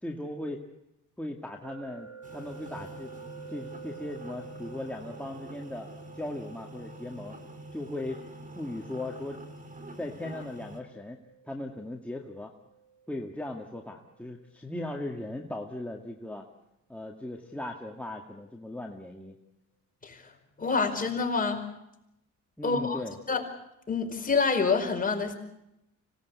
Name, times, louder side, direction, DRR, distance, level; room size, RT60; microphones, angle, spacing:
voice 1, 0.0-0.6 1.2-3.1 3.5-5.9 6.1-7.4 7.7-8.2 8.6-9.4 10.0-11.2 11.4-12.5 13.1-16.5 16.9-19.4 22.6-23.2, left 1 dB, 5° left, 0 dB, 2.1 m, -38 dB
sound 1, 1.6-14.5, right 6 dB, 85° right, 5.8 m, -50 dB
sound 2, 2.2-10.8, equal, 25° right, 3.9 m, -46 dB
voice 2, 20.6-21.6 22.6-23.0 23.3-23.4 23.9-25.3, left 4 dB, 30° left, 3 dB, 4.9 m, -27 dB
25.5 x 18.5 x 8.3 m, 0.85 s
cardioid pair, 90°, 30 cm